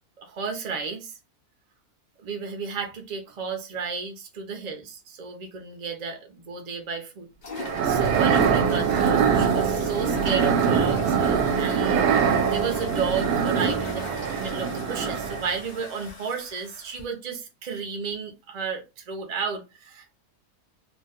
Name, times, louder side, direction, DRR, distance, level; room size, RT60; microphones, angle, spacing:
voice 1, 0.2-1.2 2.2-7.6 7.8-14.1 14.4-20.2, right 5 dB, 45° right, 0.5 m, -33 dB
sound 1, 7.4-17.0, left 4 dB, 75° left, 0.4 m, -40 dB
sound 2, 7.6-15.6, right 6 dB, 75° right, 1.0 m, -23 dB
2.6 x 2.2 x 3.4 m
omnidirectional pair, 1.7 m